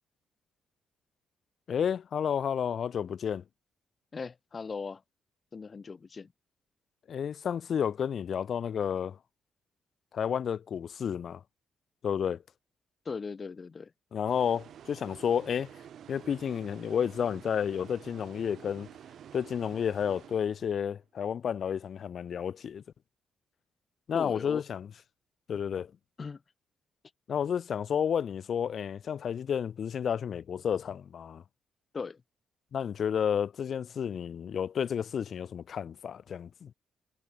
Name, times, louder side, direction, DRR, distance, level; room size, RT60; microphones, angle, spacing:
voice 1, 1.7-3.4 7.1-9.2 10.1-11.4 12.0-12.4 14.1-15.7 16.1-18.9 19.3-22.8 24.1-24.9 25.5-25.9 27.3-31.4 32.7-36.7, left 8 dB, 60° left, 2.6 m, -31 dB
voice 2, 4.1-5.0 5.5-6.3 13.0-13.9 24.1-24.6 26.2-26.4 31.9-32.2, left 5 dB, 40° left, 3.0 m, -39 dB
sound 1, 14.3-21.0, right 9 dB, 65° right, 5.4 m, -50 dB
supercardioid pair, 50°, 0 cm